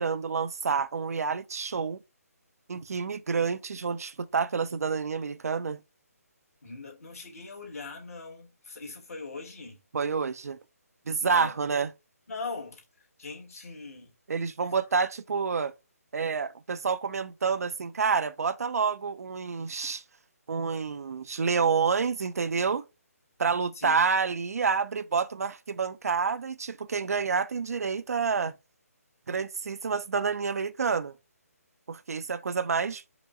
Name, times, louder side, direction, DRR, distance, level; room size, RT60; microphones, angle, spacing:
voice 1, 0.0-2.0 2.7-5.8 9.9-10.6 11.1-11.9 14.3-15.7 16.1-20.0 20.5-22.8 23.4-28.5 29.3-31.2 31.9-33.0, right 5 dB, 70° right, 0.5 m, -28 dB
voice 2, 6.6-9.8 11.2-11.7 12.3-12.8 13.2-14.1 14.6-14.7 23.7-24.2, left 3 dB, 65° left, 1.8 m, -41 dB
4.9 x 2.3 x 3.6 m
figure-of-eight pair, 150°, 9 cm